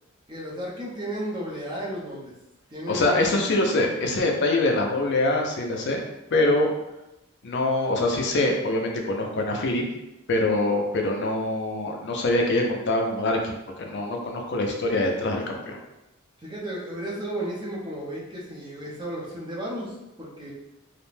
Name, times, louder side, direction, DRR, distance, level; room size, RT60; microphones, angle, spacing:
voice 1, 0.3-2.3 2.7-3.4 16.4-20.5, right 1 dB, 20° right, -5 dB, 0.6 m, -33 dB
voice 2, 2.9-6.0 6.3-6.7 7.4-9.8 10.3-15.8, left 2 dB, 55° left, 1 dB, 0.4 m, -24 dB
2.4 x 2.1 x 3.1 m, 0.93 s
head